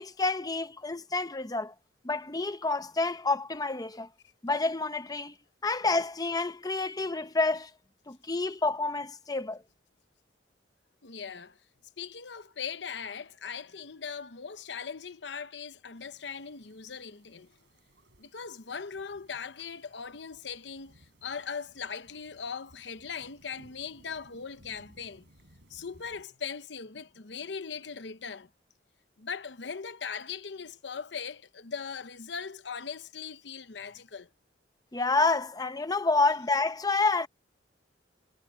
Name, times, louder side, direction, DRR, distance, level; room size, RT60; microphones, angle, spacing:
voice 1, 0.0-1.7 2.0-4.1 4.4-5.3 5.6-7.7 8.1-9.6 34.9-37.3, left 3 dB, 20° left, 0.8 m, -28 dB
voice 2, 11.0-11.6 12.0-17.5 18.2-25.2 25.7-28.5 29.2-34.3, left 6 dB, 70° left, 0.9 m, -40 dB
sound 1, 16.0-26.2, right 1 dB, 75° right, 7.4 m, -61 dB
head